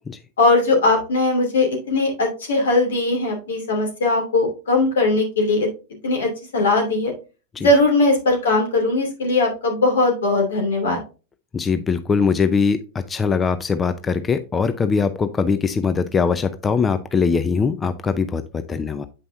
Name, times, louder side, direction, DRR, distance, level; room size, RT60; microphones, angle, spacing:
voice 1, 0.4-5.7 6.0-7.1 7.6-11.0, left 2 dB, 80° left, 2 dB, 2.7 m, -19 dB
voice 2, 11.5-19.0, left 5 dB, 20° left, 11 dB, 0.5 m, -21 dB
8.1 x 5.4 x 2.6 m, 0.32 s
hypercardioid pair, 100°, 0 cm